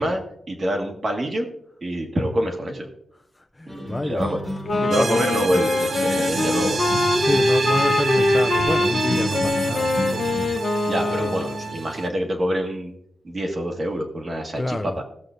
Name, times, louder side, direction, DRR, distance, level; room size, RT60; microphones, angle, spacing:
voice 1, 0.0-1.5 1.8-2.9 3.7-4.4 4.8-6.8 10.9-12.9 13.2-15.0, equal, 35° right, 2 dB, 1.6 m, -26 dB
voice 2, 3.3-4.3 4.8-5.2 7.2-10.6 11.1-11.3 14.6-15.0, left 2 dB, 15° left, 7 dB, 0.3 m, -28 dB
sound 1, 3.7-10.5, equal, 10° right, 1.7 m, -32 dB
Wind instrument woodwind instrument, 4.6-11.7, left 2 dB, 45° left, 0.8 m, -23 dB
sound 2, 4.9-12.1, right 4 dB, 55° right, 0.7 m, -28 dB
16.5 x 7.7 x 2.5 m, 0.72 s
wide cardioid pair, 165°, 0 cm